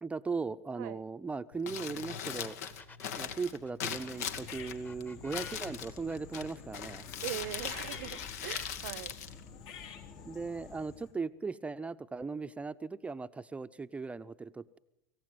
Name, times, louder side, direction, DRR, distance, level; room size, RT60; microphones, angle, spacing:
voice 1, 0.0-2.6 3.1-7.1 10.3-14.8, right 4 dB, 15° right, 0.8 m, -38 dB
Crumpling crinkling, 1.5-10.1, left 8 dB, 70° left, 2.1 m, -41 dB
sound 1, 1.8-1.9 2.2-6.8 7.2-7.7, left 4 dB, 20° left, 1.7 m, -53 dB
sound 2, 3.9-11.1, left 6 dB, 55° left, 4.0 m, -49 dB
voice 2, 7.2-9.1, right 18 dB, 65° right, 0.9 m, -41 dB
25.5 x 15.5 x 9.5 m
hypercardioid pair, 85°, 9 cm